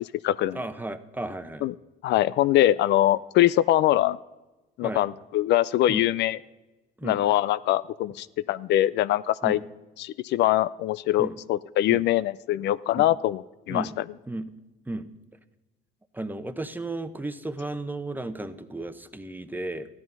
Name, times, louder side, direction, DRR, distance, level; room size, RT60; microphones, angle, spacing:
voice 1, 0.0-0.6 1.6-1.7 2.0-4.2 4.8-6.4 7.0-9.6 10.0-14.0, left 14 dB, 65° left, 16 dB, 0.4 m, -23 dB
voice 2, 0.5-1.7 4.8-5.0 5.9-6.0 7.0-7.2 9.4-9.6 11.2-11.4 11.9-12.0 13.0-13.1 13.7-14.0 14.3-14.5 14.9-15.1 16.1-19.9, right 2 dB, 10° right, 11 dB, 0.9 m, -34 dB
14.0 x 10.5 x 5.4 m, 1.1 s
supercardioid pair, 90°, 19 cm